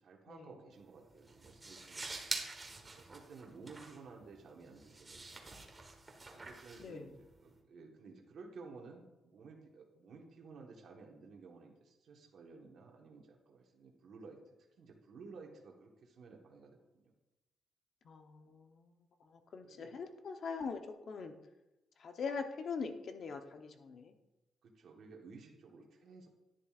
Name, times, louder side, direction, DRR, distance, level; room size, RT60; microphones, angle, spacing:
voice 1, 0.0-2.3 2.9-5.6 6.3-14.4 14.8-17.1 19.6-20.0 24.6-26.3, right 4 dB, 65° right, 0 dB, 1.3 m, -54 dB
sound 1, 0.7-7.6, right 3 dB, 20° right, 1.2 m, -47 dB
voice 2, 18.0-18.9 19.2-21.3 22.0-24.2, left 5 dB, 50° left, 6 dB, 0.8 m, -42 dB
10.5 x 10.5 x 2.5 m, 1.0 s
cardioid pair, 145°, 0 cm